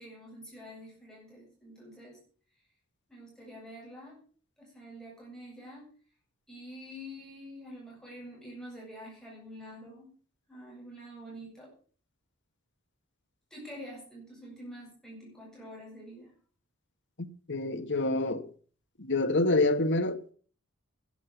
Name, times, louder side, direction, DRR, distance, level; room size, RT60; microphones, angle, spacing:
voice 1, 0.0-2.2 3.1-4.2 4.6-5.9 6.5-10.1 10.5-11.7 13.5-16.3, equal, 5° left, 7.8 m, -47 dB
voice 2, 17.5-18.4 19.0-20.3, left 2 dB, 55° left, 1.7 m, -27 dB
12.0 x 12.0 x 7.2 m
head